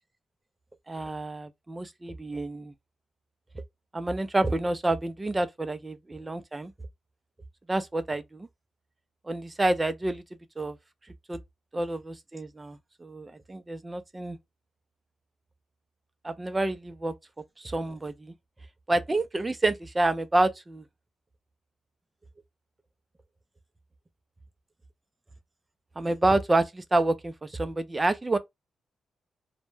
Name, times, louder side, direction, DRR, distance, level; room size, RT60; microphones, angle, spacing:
voice 1, 0.9-2.7 3.9-6.7 7.7-8.5 9.3-10.2 10.6-10.8 11.3-11.4 11.7-14.4 16.2-17.1 17.6-18.3 18.9-20.8 26.0-28.4, right 2 dB, 20° right, 0.4 m, -28 dB
2.1 x 2.1 x 3.1 m
cardioid pair, 80°, 0 cm